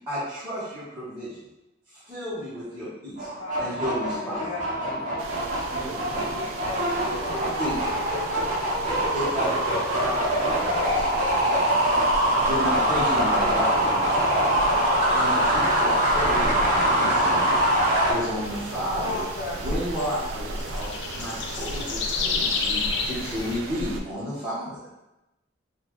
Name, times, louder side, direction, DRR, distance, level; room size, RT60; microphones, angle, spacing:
voice 1, 0.1-1.4 2.1-3.3 3.6-4.5 7.6-7.7 9.1-11.1 12.5-13.9 15.1-17.5 18.1-19.2 19.5-20.9 21.1-24.9, equal, 15° right, -15 dB, 1.1 m, -32 dB
sound 1, 3.2-18.1, right 1 dB, 40° right, 0.8 m, -23 dB
voice 2, 3.4-3.7 4.1-4.6 6.3-7.8 18.9-19.6, left 2 dB, 90° left, -7 dB, 0.7 m, -35 dB
voice 3, 4.7-6.5, right 1 dB, 20° left, -8 dB, 1.1 m, -42 dB
sound 2, 5.2-24.0, right 2 dB, 85° right, 0.4 m, -36 dB
sound 3, 18.4-23.6, left 5 dB, 60° left, 0.4 m, -31 dB
4.0 x 2.3 x 3.1 m, 0.95 s
head